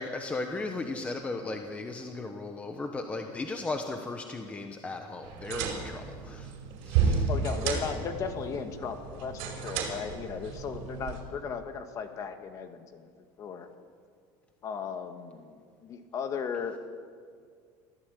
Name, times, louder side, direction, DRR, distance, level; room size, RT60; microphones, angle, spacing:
voice 1, 0.0-6.5 6.8-7.3, left 3 dB, 15° left, 4 dB, 1.2 m, -36 dB
sound 1, 5.2-11.2, right 6 dB, 70° right, 5.2 m, -32 dB
voice 2, 7.3-13.1 13.4-13.7 14.6-16.8, left 6 dB, 35° left, 7 dB, 1.7 m, -36 dB
24.0 x 15.5 x 8.4 m, 2.1 s
cardioid pair, 165°, 10 cm